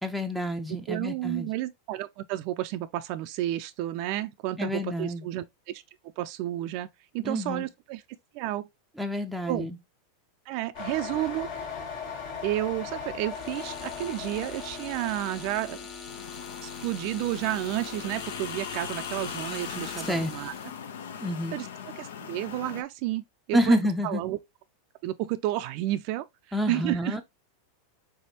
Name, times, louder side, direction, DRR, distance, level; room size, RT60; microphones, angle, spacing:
voice 1, 0.0-1.5 4.6-5.2 7.2-7.7 9.0-9.8 20.1-20.3 21.2-21.6 23.5-24.2 26.5-27.2, equal, ahead, 0.5 m, -28 dB
voice 2, 0.7-5.8 6.2-6.9 7.1-8.0 8.3-8.7 9.5-9.7 10.5-11.5 12.4-15.8 16.6-20.5 21.5-21.7 22.0-23.8 24.0-24.4 25.0-26.2 26.7-27.2, right 15 dB, 55° right, 0.4 m, -31 dB
sound 1, 10.7-16.1, left 6 dB, 65° left, 1.6 m, -38 dB
sound 2, 13.3-20.7, left 6 dB, 40° left, 1.3 m, -43 dB
sound 3, 16.0-22.8, left 7 dB, 85° left, 0.6 m, -39 dB
3.7 x 3.4 x 2.7 m
hypercardioid pair, 115°, 0 cm